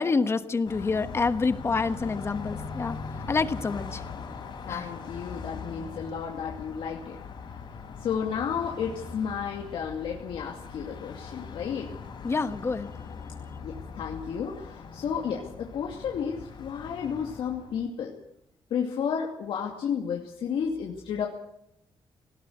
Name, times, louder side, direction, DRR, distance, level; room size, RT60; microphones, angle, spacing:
voice 1, 0.0-3.0 3.3-4.0 4.7-4.8 12.2-12.9, left 4 dB, 30° left, 11 dB, 1.2 m, -27 dB
Car passing by, 0.6-17.9, left 5 dB, 60° left, 5.1 m, -41 dB
voice 2, 4.7-7.2 7.5-7.6 8.0-11.9 13.6-18.1 18.7-21.3, left 7 dB, 90° left, 0 dB, 2.6 m, -32 dB
19.0 x 17.5 x 8.0 m, 0.78 s
wide cardioid pair, 150°, 9 cm